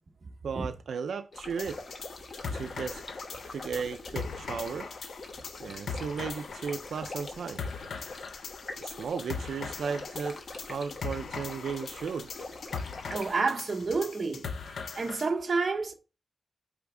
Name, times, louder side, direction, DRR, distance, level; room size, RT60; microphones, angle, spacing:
voice 1, 0.4-1.8 2.5-3.0 3.5-4.9 5.6-7.7 8.8-12.4, right 6 dB, 85° right, 0.4 m, -35 dB
sound 1, 1.3-13.4, left 3 dB, 45° left, 1.1 m, -44 dB
sound 2, 1.6-15.3, left 5 dB, 90° left, 0.7 m, -40 dB
voice 2, 13.1-15.9, right 4 dB, 40° right, 1.1 m, -30 dB
8.6 x 3.4 x 3.7 m
wide cardioid pair, 160°, 0 cm